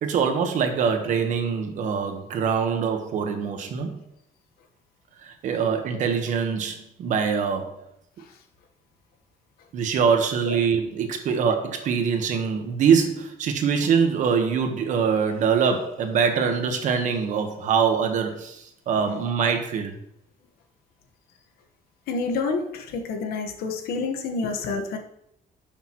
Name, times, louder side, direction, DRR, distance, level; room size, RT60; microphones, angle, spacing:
voice 1, 0.0-4.0 5.2-7.8 9.7-20.0, right 6 dB, 55° right, 6 dB, 1.3 m, -24 dB
voice 2, 22.1-25.0, left 4 dB, 90° left, 4 dB, 1.4 m, -28 dB
11.5 x 6.7 x 3.1 m, 0.78 s
cardioid pair, 165°, 15 cm